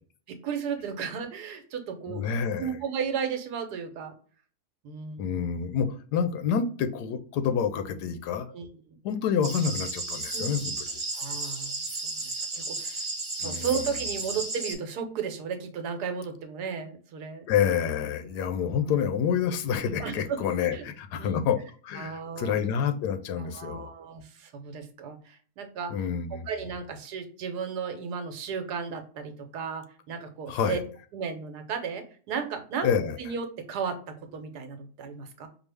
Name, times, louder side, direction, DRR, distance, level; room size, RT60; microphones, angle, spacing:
voice 1, 0.3-4.1 4.8-5.4 8.5-9.0 10.3-10.6 11.1-11.8 12.2-13.0 13.4-17.5 20.0-20.4 20.7-20.8 21.2-21.4 22.0-22.6 23.4-25.9 26.5-30.8 31.1-32.9 33.2-35.5, right 6 dB, 80° right, 6 dB, 1.3 m, -34 dB
voice 2, 2.1-2.8 5.2-8.5 9.0-11.0 13.4-13.7 17.5-21.6 21.8-23.9 25.9-26.5 30.5-30.8 32.8-33.2, left 7 dB, 90° left, 9 dB, 1.2 m, -28 dB
sound 1, 9.4-14.7, right 3 dB, 35° right, 0.4 m, -33 dB
4.6 x 2.4 x 3.3 m, 0.42 s
omnidirectional pair, 1.7 m